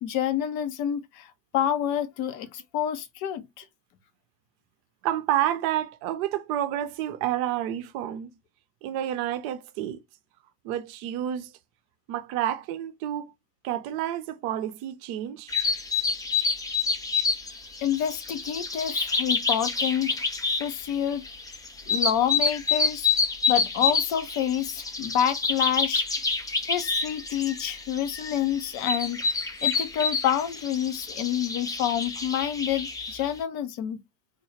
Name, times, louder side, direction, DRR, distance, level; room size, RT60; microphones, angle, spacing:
voice 1, 0.0-3.6 17.8-20.2 20.6-21.2 21.9-23.1 23.5-26.2 26.7-34.0, left 10 dB, 50° left, 0.7 m, -28 dB
voice 2, 5.0-8.3 8.8-10.0 10.6-11.5 12.1-13.3 13.6-15.6, right 11 dB, 55° right, 0.6 m, -29 dB
sound 1, 15.5-33.2, left 4 dB, 10° left, 0.4 m, -28 dB
3.6 x 2.3 x 3.2 m
figure-of-eight pair, 65°, 46 cm